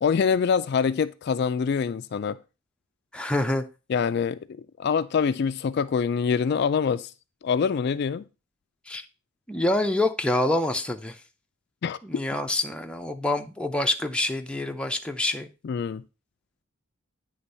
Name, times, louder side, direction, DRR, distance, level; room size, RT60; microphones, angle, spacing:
voice 1, 0.0-2.4 3.9-4.4 4.8-7.1 7.4-8.2 11.8-12.0 15.6-16.0, left 6 dB, 55° left, 0.3 m, -25 dB
voice 2, 3.1-3.6 8.9-9.0 9.5-11.2 12.0-15.5, left 2 dB, 5° left, 0.6 m, -26 dB
9.7 x 3.5 x 5.4 m
head